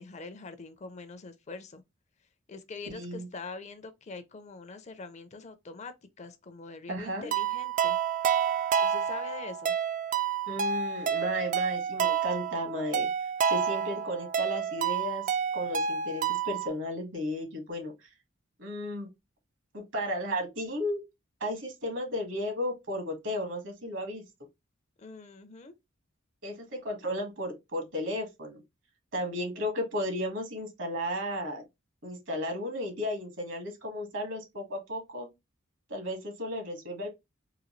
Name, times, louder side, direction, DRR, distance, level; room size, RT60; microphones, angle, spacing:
voice 1, 0.0-1.8 2.5-8.0 8.8-9.8 25.0-25.7, left 3 dB, 35° left, 0.5 m, -44 dB
voice 2, 2.9-3.3 6.9-7.3 10.5-13.1 13.5-15.2 15.5-18.1 18.6-19.1 19.7-21.0 21.4-24.2 26.4-28.6 29.1-31.6 32.0-35.3 35.9-37.1, left 1 dB, 70° right, 1.5 m, -34 dB
sound 1, 7.3-16.7, right 7 dB, 40° right, 0.3 m, -29 dB
3.9 x 2.7 x 3.0 m
head